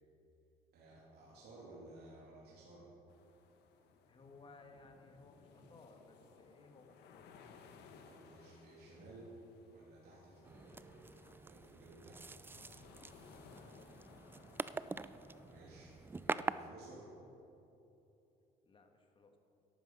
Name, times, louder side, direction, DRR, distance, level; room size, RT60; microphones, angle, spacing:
voice 1, 0.7-2.9 8.1-9.3 9.7-12.2 15.4-17.1, right 2 dB, 70° right, -6 dB, 2.8 m, -56 dB
sound 1, 3.1-16.7, left 5 dB, 80° left, 1.3 m, -62 dB
voice 2, 4.1-7.3 13.5-14.8 18.6-19.4, left 3 dB, 30° left, 4 dB, 1.6 m, -61 dB
sound 2, 10.4-16.5, right 3 dB, 15° right, 0.3 m, -44 dB
13.5 x 11.5 x 5.4 m, 2.9 s
cardioid pair, 110°, 17 cm